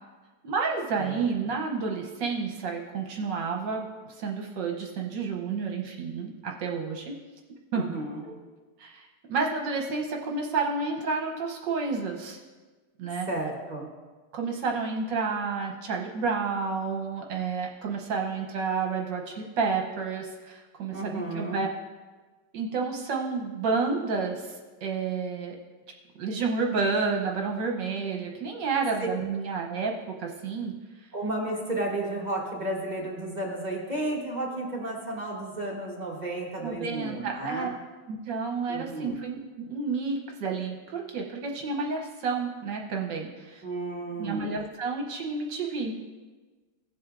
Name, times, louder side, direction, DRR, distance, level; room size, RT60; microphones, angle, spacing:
voice 1, 0.4-7.1 7.7-7.9 8.2-8.3 8.8-12.4 13.0-13.3 14.3-21.7 22.5-25.6 26.2-31.1 36.6-37.7 38.1-43.6 44.2-45.9, right 4 dB, 70° right, 1 dB, 1.5 m, -30 dB
voice 2, 7.7-8.3 13.3-13.9 20.9-21.7 31.1-37.7 38.7-39.2 43.6-44.5, right 1 dB, 25° right, -2 dB, 1.1 m, -33 dB
16.5 x 7.7 x 2.5 m, 1.3 s
omnidirectional pair, 2.1 m